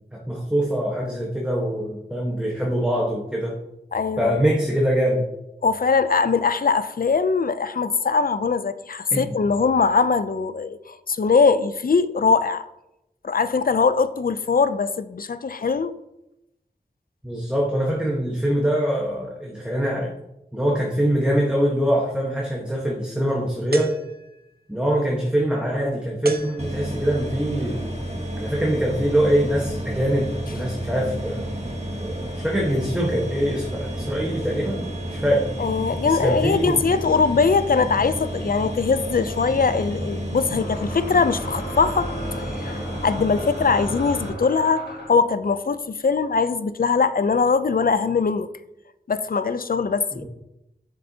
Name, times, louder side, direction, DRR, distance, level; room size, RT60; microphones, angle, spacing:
voice 1, 0.1-3.6 4.2-5.3 9.1-9.3 17.2-20.1 20.5-23.9 24.7-27.9 28.4-31.5 32.0-35.5 36.0-36.8 50.1-50.2, equal, 5° right, 1.2 m, -23 dB
voice 2, 3.9-4.3 5.6-12.6 13.2-15.9 35.6-48.5 49.1-50.2, left 5 dB, 60° left, 0.4 m, -21 dB
sound 1, 23.7-24.6 26.2-27.2, right 3 dB, 65° right, 0.7 m, -37 dB
sound 2, 26.6-44.3, right 1 dB, 40° right, 1.5 m, -31 dB
sound 3, 40.4-45.3, left 1 dB, 80° left, 1.7 m, -36 dB
7.6 x 6.8 x 2.8 m
wide cardioid pair, 50°, 17 cm